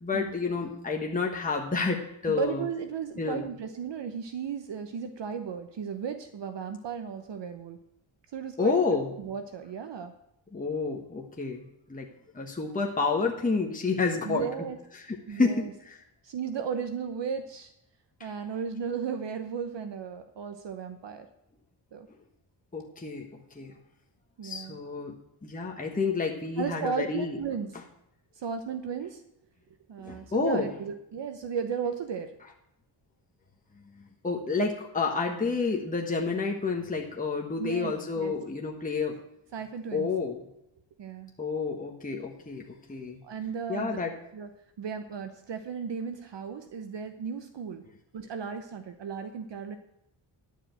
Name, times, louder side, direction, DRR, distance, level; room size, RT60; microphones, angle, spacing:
voice 1, 0.0-2.6 3.2-3.5 8.6-9.1 10.5-12.1 12.3-14.5 14.9-16.0 18.2-18.3 22.7-23.7 24.4-27.4 30.0-30.7 34.2-39.2 39.9-40.4 41.4-43.2 43.7-44.2, left 4 dB, 15° left, 0 dB, 1.3 m, -30 dB
voice 2, 2.3-7.8 8.3-8.8 9.2-10.1 14.2-14.8 15.3-15.7 16.2-17.7 18.2-21.3 21.9-22.1 24.4-24.8 26.6-27.7 28.4-29.2 29.9-32.3 37.6-38.3 39.5-40.1 41.0-41.4 43.2-44.0 44.3-44.5 44.8-47.8 48.1-49.8, right 6 dB, 60° right, 8 dB, 1.0 m, -35 dB
11.5 x 5.2 x 7.8 m, 0.80 s
cardioid pair, 90°, 49 cm